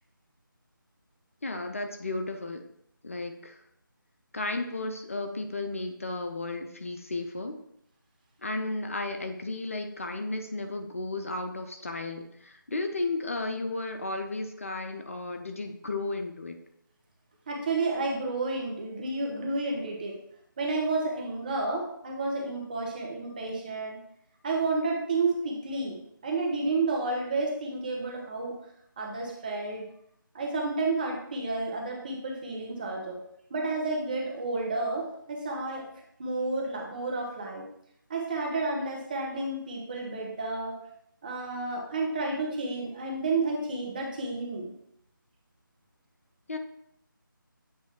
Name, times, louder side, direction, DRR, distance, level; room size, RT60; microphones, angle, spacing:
voice 1, 1.4-2.6 3.0-3.6 4.3-7.6 8.4-16.6 46.5-46.6, left 2 dB, 40° left, 6 dB, 0.6 m, -34 dB
voice 2, 17.5-20.2 20.6-24.0 24.4-26.0 26.2-28.6 29.0-29.8 30.3-33.2 33.5-35.9 36.2-37.6 38.1-40.7 41.2-44.7, right 3 dB, 25° right, 0 dB, 1.0 m, -31 dB
8.2 x 2.7 x 4.6 m, 0.73 s
figure-of-eight pair, 160°, 12 cm